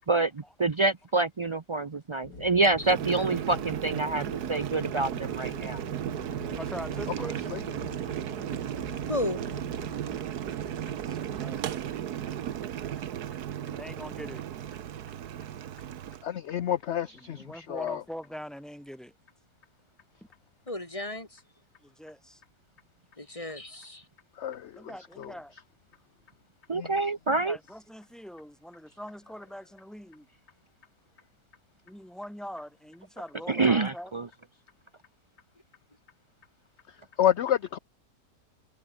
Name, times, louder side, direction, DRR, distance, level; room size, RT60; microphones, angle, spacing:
voice 1, 0.1-5.8 26.7-27.6 33.5-34.3, right 3 dB, 45° right, 0.3 m, -27 dB
sound 1, 2.2-11.5, left 3 dB, 85° left, 4.6 m, -46 dB
Boiling, 2.8-16.3, right 10 dB, 75° right, 1.5 m, -35 dB
voice 2, 6.4-7.5 11.1-11.7 13.6-14.4 17.1-19.1 21.8-22.4 24.7-25.5 27.4-30.3 31.9-34.1, equal, ahead, 3.5 m, -43 dB
voice 3, 9.1-9.4 20.7-21.4 23.2-24.0, left 1 dB, 20° left, 2.3 m, -34 dB
voice 4, 16.2-18.0 24.4-24.7 25.2-25.3 26.7-26.9 37.2-37.8, left 10 dB, 55° left, 0.8 m, -28 dB
omnidirectional pair, 1.7 m